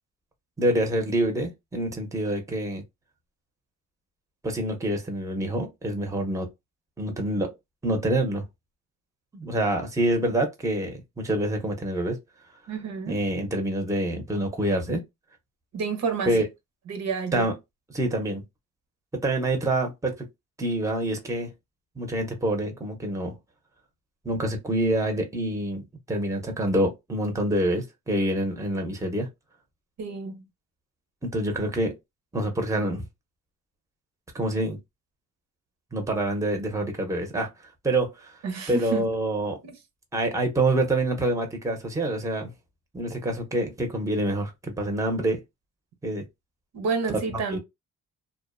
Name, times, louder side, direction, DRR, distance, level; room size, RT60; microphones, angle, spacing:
voice 1, 0.6-2.8 4.4-6.5 7.0-7.5 7.8-8.4 9.3-12.2 13.1-15.0 16.3-16.4 17.3-17.5 17.9-18.4 19.2-20.1 20.6-21.5 22.0-23.3 24.2-29.3 31.2-31.9 32.3-33.0 34.3-34.8 35.9-37.5 37.8-38.3 38.7-39.6 40.1-42.5 42.9-45.4 46.0-46.2 47.1-47.2 47.5-47.6, right 1 dB, 10° right, 0.7 m, -26 dB
voice 2, 12.7-13.3 15.7-16.4 16.9-17.5 30.0-30.5 38.4-39.1 39.6-39.8 46.7-47.6, right 5 dB, 65° right, 0.8 m, -29 dB
2.4 x 2.1 x 2.4 m
cardioid pair, 90°, 30 cm